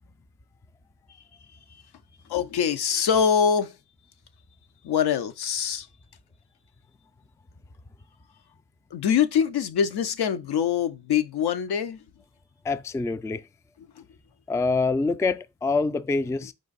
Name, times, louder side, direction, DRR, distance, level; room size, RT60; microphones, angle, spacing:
voice 1, 2.3-3.8 4.8-5.9 8.9-12.1 13.8-14.0, left 7 dB, 75° left, 0.7 m, -24 dB
voice 2, 12.6-13.5 14.5-16.5, left 3 dB, 10° left, 0.3 m, -25 dB
4.9 x 2.5 x 3.9 m
cardioid pair, 50°, 40 cm